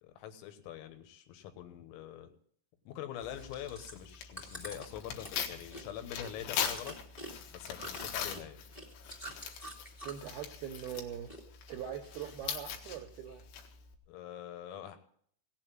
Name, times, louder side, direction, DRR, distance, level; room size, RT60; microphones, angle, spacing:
voice 1, 0.0-2.3 2.9-7.0 7.5-8.6 14.1-15.0, left 10 dB, 85° left, 8 dB, 3.9 m, -44 dB
Tearing, 3.2-13.9, left 8 dB, 70° left, 3.5 m, -42 dB
Chewing mastication, 3.3-10.4 10.7-11.4 11.7-12.6 13.1-13.2, right 1 dB, 25° left, 0.7 m, -47 dB
voice 2, 10.0-11.3 11.7-13.4, right 9 dB, 80° right, 3 dB, 2.2 m, -42 dB
17.0 x 7.6 x 7.4 m, 0.62 s
omnidirectional pair, 5.9 m